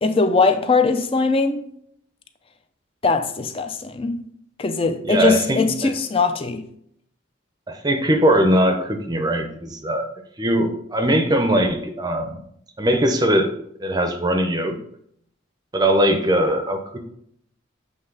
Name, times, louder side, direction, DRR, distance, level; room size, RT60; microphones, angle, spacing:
voice 1, 0.0-1.7 3.0-4.2 4.6-6.6, left 4 dB, 25° left, 0.4 m, -20 dB
voice 2, 5.0-5.9 7.7-10.1 10.4-12.4 12.8-13.5 13.8-14.8 15.7-17.0, right 1 dB, 20° right, 0.6 m, -20 dB
7.7 x 3.2 x 3.9 m
head